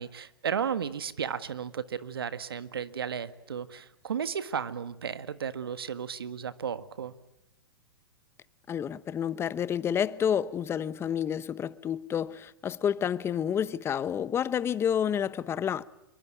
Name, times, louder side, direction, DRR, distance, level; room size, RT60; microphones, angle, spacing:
voice 1, 0.0-7.1, right 7 dB, 80° right, 1.6 m, -34 dB
voice 2, 8.7-15.8, left 8 dB, 20° left, 1.0 m, -29 dB
27.5 x 23.0 x 9.1 m
hypercardioid pair, 120°, 12 cm